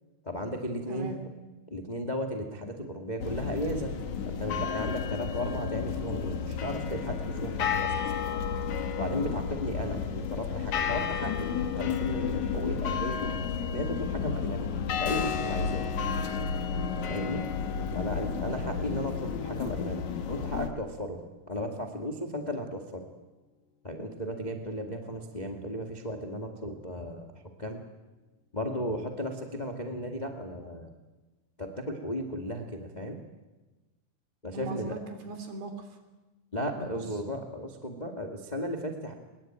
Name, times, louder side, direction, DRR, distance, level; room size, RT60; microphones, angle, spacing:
voice 1, 0.2-1.2 1.7-3.9 4.2-7.9 8.9-13.3 13.7-14.7 15.0-15.9 17.0-17.4 17.9-21.2 21.5-23.0 23.8-27.3 27.6-27.8 28.5-30.9 31.6-33.2 34.4-34.9 36.5-39.1, equal, 20° left, 3 dB, 1.0 m, -35 dB
voice 2, 0.9-1.2 34.5-36.0 36.7-37.2, right 2 dB, 75° right, 6 dB, 5.3 m, -39 dB
sound 1, 3.2-20.7, left 6 dB, 55° left, 2.5 m, -32 dB
Keyboard (musical), 15.1-22.4, left 7 dB, 70° left, 4.0 m, -44 dB
22.5 x 22.0 x 9.1 m, 1.1 s
omnidirectional pair, 4.8 m